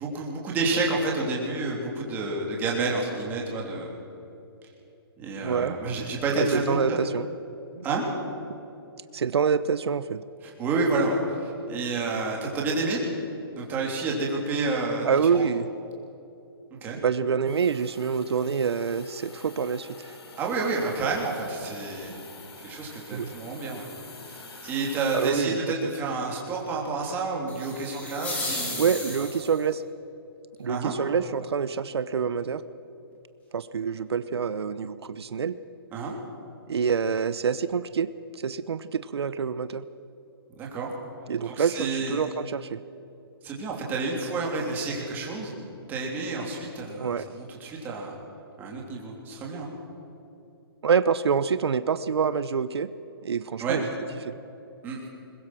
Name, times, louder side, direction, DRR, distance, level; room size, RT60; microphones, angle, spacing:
voice 1, 0.0-3.9 5.2-7.0 7.8-8.0 10.4-13.0 13.5-15.5 16.8-17.0 20.4-22.1 22.6-23.9 24.3-29.3 30.7-30.9 35.9-36.1 40.5-40.9 41.4-42.2 43.4-45.5 45.9-48.1 48.6-49.7 53.6-53.8 54.8-55.1, right 3 dB, 15° right, -2 dB, 3.2 m, -29 dB
voice 2, 5.4-5.7 6.4-7.3 7.8-7.9 9.1-10.2 15.0-15.7 17.0-20.1 23.1-23.3 25.1-25.9 28.7-29.8 30.6-32.6 33.5-35.6 36.7-39.9 41.3-42.8 47.0-47.3 50.8-52.9 53.2-53.9 54.2-54.3, right 6 dB, 90° right, 14 dB, 0.8 m, -26 dB
Hiss, 17.5-25.3, left 3 dB, 80° left, 4.3 m, -47 dB
sound 1, 27.5-29.7, left 2 dB, 10° left, 2.9 m, -34 dB
21.5 x 20.5 x 6.2 m, 2.8 s
hypercardioid pair, 165°, 13 cm